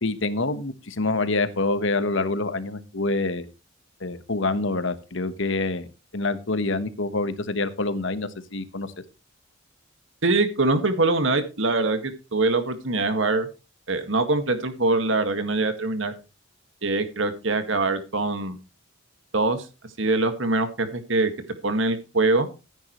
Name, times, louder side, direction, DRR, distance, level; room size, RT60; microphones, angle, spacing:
voice 1, 0.0-3.5 4.0-5.9 6.1-8.9, left 2 dB, 65° left, 12 dB, 1.3 m, -26 dB
voice 2, 10.2-13.5 13.9-16.1 16.8-18.6 19.3-19.7 20.0-21.3 21.6-22.5, right 2 dB, 65° right, 9 dB, 1.9 m, -23 dB
15.0 x 9.9 x 3.1 m, 0.30 s
head